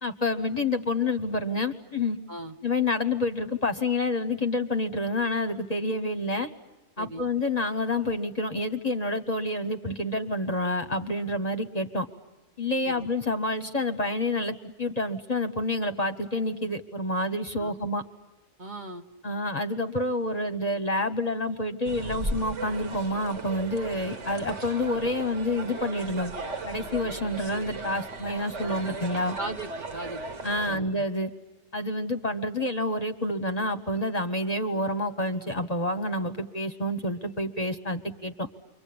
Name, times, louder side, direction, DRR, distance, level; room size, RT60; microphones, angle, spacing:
voice 1, 0.0-2.2 2.6-6.5 7.0-12.1 12.6-18.0 19.2-26.3 26.7-29.4 30.4-31.3 31.7-38.5, left 2 dB, 35° left, 9 dB, 1.1 m, -28 dB
voice 2, 18.6-19.1 23.9-24.0 29.3-30.2 30.6-30.9, right 2 dB, 40° right, 4 dB, 1.2 m, -38 dB
sound 1, 21.8-30.8, right 3 dB, 65° right, 1.8 m, -36 dB
29.5 x 24.0 x 8.6 m, 1.1 s
omnidirectional pair, 1.3 m